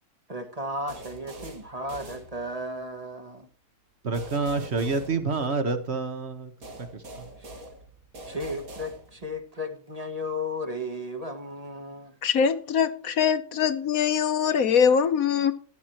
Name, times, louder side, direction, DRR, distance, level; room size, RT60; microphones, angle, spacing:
voice 1, 0.3-3.5 7.3-7.4 8.3-12.1, left 1 dB, 25° right, 1.2 m, -34 dB
sound 1, 0.9-2.8 4.1-5.9 6.6-9.4, right 1 dB, 70° right, 2.4 m, -44 dB
voice 2, 4.0-6.5 6.8-7.3, right 4 dB, 50° right, 1.4 m, -28 dB
voice 3, 12.2-15.5, left 7 dB, 70° left, 1.3 m, -23 dB
14.0 x 10.5 x 3.0 m
omnidirectional pair, 1.6 m